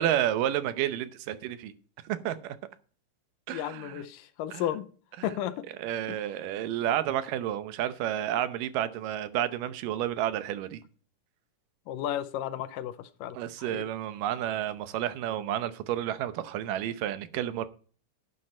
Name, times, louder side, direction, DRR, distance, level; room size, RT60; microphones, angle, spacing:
voice 1, 0.0-1.7 2.0-2.6 3.5-4.0 4.5-4.7 5.2-5.3 5.8-10.8 13.3-17.7, right 11 dB, 80° right, 2.4 m, -30 dB
voice 2, 3.5-4.9 5.2-5.6 11.9-13.8, left 11 dB, 80° left, 2.3 m, -34 dB
11.0 x 9.1 x 4.3 m
omnidirectional pair, 3.9 m